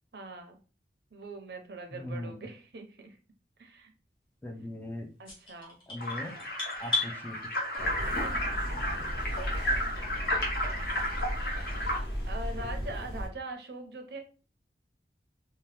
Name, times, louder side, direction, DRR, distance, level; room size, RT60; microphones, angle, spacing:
voice 1, 0.1-0.6 1.1-3.2 3.6-3.9 5.2-5.8 7.8-9.2 10.0-10.5 12.3-14.2, right 2 dB, 65° right, 4 dB, 0.6 m, -43 dB
voice 2, 1.9-2.4 4.4-5.1 5.9-6.4 6.8-7.4, left 1 dB, 10° left, 3 dB, 0.4 m, -39 dB
sound 1, 5.2-7.1, left 2 dB, 30° left, 1.0 m, -33 dB
sound 2, 6.0-12.0, equal, 60° left, 0.9 m, -33 dB
sound 3, 7.8-13.3, equal, 75° left, 1.2 m, -35 dB
2.8 x 2.2 x 3.2 m, 0.35 s
head